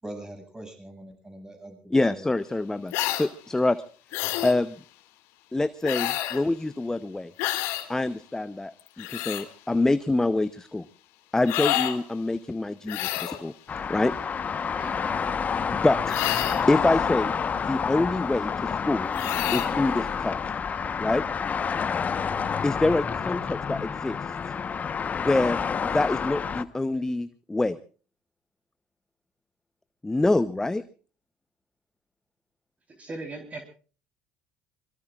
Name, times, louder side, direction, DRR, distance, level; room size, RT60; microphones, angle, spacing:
voice 1, 0.0-2.3, right 1 dB, 15° right, 6 dB, 7.0 m, -42 dB
voice 2, 1.9-3.8 4.4-4.8 5.5-7.3 7.9-10.9 11.3-13.5 13.9-14.1 15.5-16.2 16.7-19.1 19.5-20.4 21.0-21.2 22.6-24.3 25.2-27.8 30.0-30.8, left 2 dB, 10° left, 14 dB, 0.8 m, -26 dB
sound 1, 2.9-3.3 4.1-4.6 5.8-6.4 7.4-7.9 8.8-9.5 11.5-12.0 12.9-13.4 16.1-16.7 19.1-19.7, left 15 dB, 65° left, 2.2 m, -28 dB
sound 2, 13.7-26.6, left 6 dB, 35° left, 1.1 m, -29 dB
voice 3, 22.1-22.4 32.9-33.6, right 2 dB, 30° right, 5 dB, 3.8 m, -39 dB
24.5 x 22.0 x 2.5 m, 0.39 s
hypercardioid pair, 65°, 5 cm